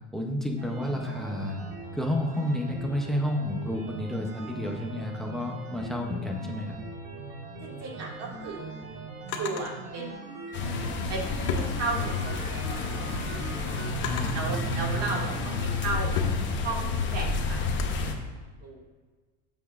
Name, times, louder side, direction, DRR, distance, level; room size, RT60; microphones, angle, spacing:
voice 1, 0.1-1.6 1.9-6.7 14.1-14.6, left 1 dB, ahead, 1 dB, 0.4 m, -30 dB
sound 1, 0.6-17.6, right 3 dB, 75° right, 2.4 m, -41 dB
voice 2, 7.6-8.8 9.4-10.1 11.1-13.2 14.3-16.2 16.6-17.7 18.6-18.8, right 3 dB, 40° right, -1 dB, 1.8 m, -35 dB
Drawer open or close, 8.1-9.7 10.8-12.4 12.9-14.5 15.2-18.0, left 5 dB, 90° left, 1.6 m, -37 dB
sound 2, 10.5-18.1, left 3 dB, 25° left, 0.8 m, -30 dB
13.5 x 7.1 x 2.3 m, 1.4 s
cardioid pair, 175°, 42 cm